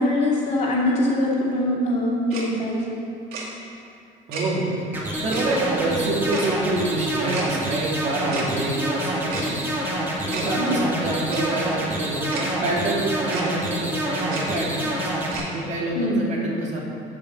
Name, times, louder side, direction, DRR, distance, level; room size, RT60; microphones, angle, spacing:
voice 1, 0.0-3.0 10.6-10.8 15.9-16.4, left 1 dB, 45° left, -4 dB, 2.7 m, -23 dB
Tick-tock, 2.3-2.4 3.3-3.4 4.3-4.4 5.3-5.4 6.3-6.5 7.3-7.5 8.3-8.5 9.3-9.5 10.3-10.5 11.3-11.4 12.3-12.4 13.3-13.5 14.3-14.4 15.3-15.5, right 4 dB, 70° right, 2.6 m, -32 dB
voice 2, 4.3-4.9 5.2-16.8, right 2 dB, 45° right, -3 dB, 2.4 m, -27 dB
sound 1, 4.9-15.3, right 1 dB, 15° right, 2.0 m, -27 dB
8.9 x 8.4 x 7.4 m, 2.5 s
cardioid pair, 160°, 16 cm